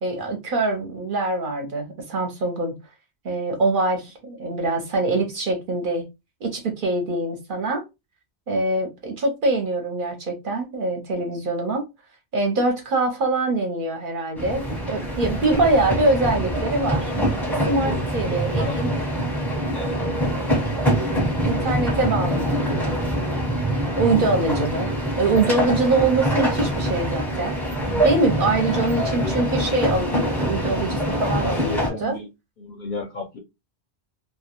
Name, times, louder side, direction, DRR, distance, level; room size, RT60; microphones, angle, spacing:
voice 1, 0.0-2.8 3.2-6.0 6.4-7.8 8.5-11.9 12.3-17.1 17.5-19.0 21.4-22.9 24.0-27.6 28.0-32.2, right 2 dB, 55° right, 0.7 m, -24 dB
sound 1, 14.4-31.9, equal, ahead, 0.5 m, -24 dB
voice 2, 18.3-18.8 19.6-20.0 21.4-21.6 29.0-29.3 31.4-32.3 32.6-33.4, left 2 dB, 60° left, 0.6 m, -33 dB
2.1 x 2.1 x 2.8 m
omnidirectional pair, 1.2 m